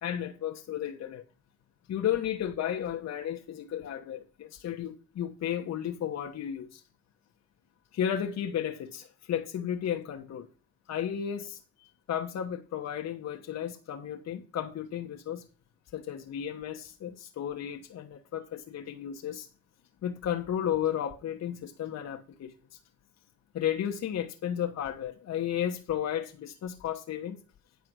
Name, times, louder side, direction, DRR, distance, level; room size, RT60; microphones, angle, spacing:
voice 1, 0.0-1.2 1.9-6.8 7.9-10.5 10.9-11.6 12.1-15.4 15.9-19.5 20.0-22.8 23.5-27.4, left 10 dB, 60° left, 1.1 m, -33 dB
9.5 x 4.6 x 6.1 m
cardioid pair, 90°, 30 cm